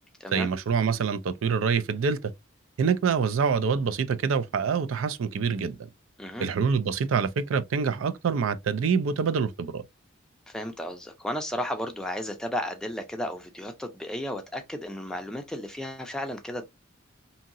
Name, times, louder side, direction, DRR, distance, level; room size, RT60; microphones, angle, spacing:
voice 1, 0.3-2.3 2.8-5.8 6.4-9.8, right 6 dB, 80° right, 0.4 m, -26 dB
voice 2, 10.5-16.7, equal, 5° left, 0.5 m, -34 dB
2.8 x 2.7 x 2.5 m
head